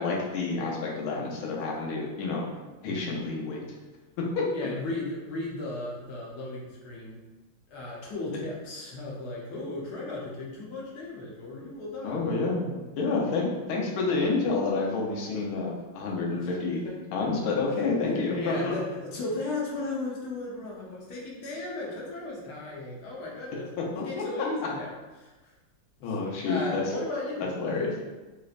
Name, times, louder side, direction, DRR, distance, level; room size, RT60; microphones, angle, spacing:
voice 1, 0.0-2.4 2.8-3.6 4.2-4.5 12.0-16.8 17.1-18.7 23.8-24.2 26.0-26.8 27.6-27.9, left 3 dB, 90° left, -2 dB, 1.6 m, -29 dB
voice 2, 4.5-7.2 7.7-12.2 13.8-14.1 16.4-16.5 16.8-17.0 17.2-23.7 24.0-24.9 25.2-25.5 26.0-28.0, left 2 dB, 60° left, -4 dB, 1.2 m, -36 dB
3.3 x 3.0 x 2.4 m, 1.2 s
omnidirectional pair, 2.3 m